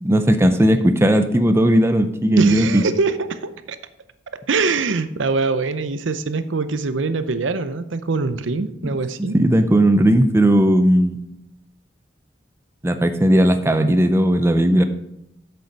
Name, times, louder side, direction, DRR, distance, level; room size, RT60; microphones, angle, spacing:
voice 1, 0.0-2.8 8.8-8.9 9.3-11.2 12.8-14.8, right 1 dB, 15° right, 8 dB, 0.5 m, -16 dB
voice 2, 2.4-3.8 4.5-9.4, right 4 dB, 85° right, 12 dB, 0.6 m, -23 dB
8.0 x 6.8 x 5.2 m, 0.82 s
head